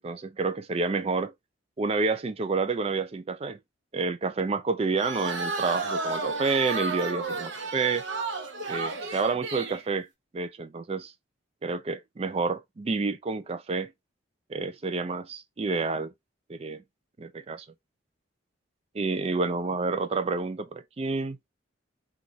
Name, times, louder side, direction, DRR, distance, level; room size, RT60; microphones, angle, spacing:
voice 1, 0.0-1.3 1.8-3.6 3.9-8.0 8.7-10.1 10.3-11.1 11.6-13.9 14.5-16.1 16.5-16.8 17.2-17.7 18.9-21.4, right 4 dB, 30° right, 0.3 m, -29 dB
sound 1, 5.0-9.8, right 3 dB, 65° right, 0.7 m, -32 dB
4.0 x 2.3 x 2.9 m
head